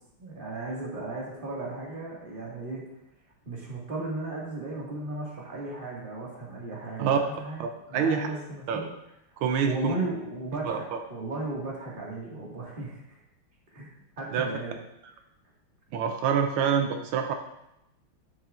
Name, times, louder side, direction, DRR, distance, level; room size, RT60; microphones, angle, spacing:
voice 1, 0.2-2.8 3.4-8.9 9.6-13.2 13.7-13.9 14.2-14.8, right 2 dB, 25° right, -4 dB, 1.8 m, -35 dB
voice 2, 7.6-8.3 8.7-8.8 9.4-9.9 10.7-11.0 14.3-14.5 15.9-17.3, right 7 dB, 80° right, 5 dB, 1.5 m, -26 dB
11.0 x 7.4 x 2.4 m, 0.86 s
omnidirectional pair, 2.3 m